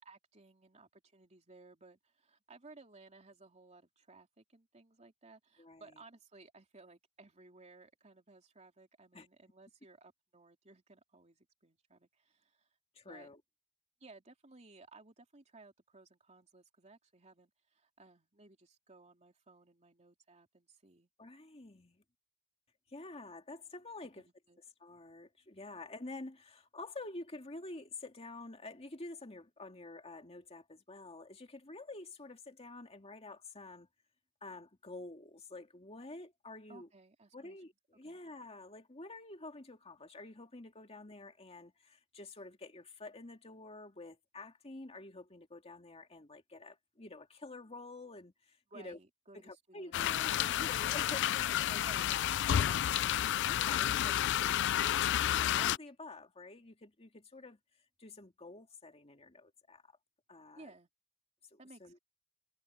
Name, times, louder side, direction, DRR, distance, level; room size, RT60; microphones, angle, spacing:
voice 1, 0.0-12.7 13.0-13.3 14.0-21.1 24.2-24.6 36.7-37.6 38.0-38.2 48.7-50.6 51.8-52.2 52.5-53.2 60.6-60.9 61.6-62.0, right 3 dB, 30° right, 3.2 m, -59 dB
voice 2, 5.6-6.0 9.1-9.3 12.9-13.4 21.2-22.0 22.9-24.3 24.8-33.9 34.4-36.9 37.3-49.0 49.3-51.8 52.4-52.9 53.5-57.6 58.0-59.8 60.3-60.7 61.5-62.0, left 2 dB, 30° left, 2.2 m, -49 dB
sound 1, 49.9-55.8, left 11 dB, 55° left, 0.3 m, -31 dB
head